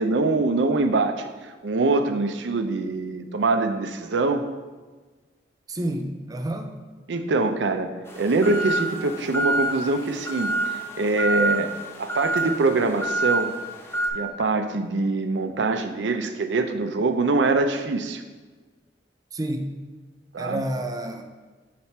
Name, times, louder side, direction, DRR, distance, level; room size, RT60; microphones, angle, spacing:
voice 1, 0.0-4.4 7.1-11.7 12.0-13.5 14.1-18.2 20.3-20.6, right 3 dB, 90° right, 7 dB, 0.5 m, -24 dB
voice 2, 5.7-6.7 19.3-19.7 20.4-21.2, right 1 dB, 20° right, 6 dB, 0.4 m, -29 dB
sound 1, 8.1-14.1, right 2 dB, 15° left, 0.7 m, -27 dB
5.8 x 4.2 x 4.4 m, 1.4 s
head